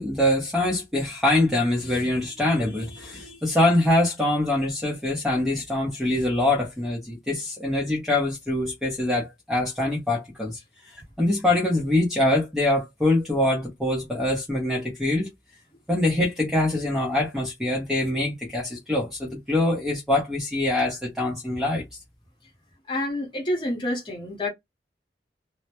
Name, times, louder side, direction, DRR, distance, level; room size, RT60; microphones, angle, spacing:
voice 1, 0.0-10.6 11.2-15.3 15.9-21.8, left 1 dB, 5° right, 0.6 m, -24 dB
voice 2, 22.9-24.5, left 1 dB, 25° left, 1.0 m, -28 dB
2.1 x 2.1 x 2.8 m
head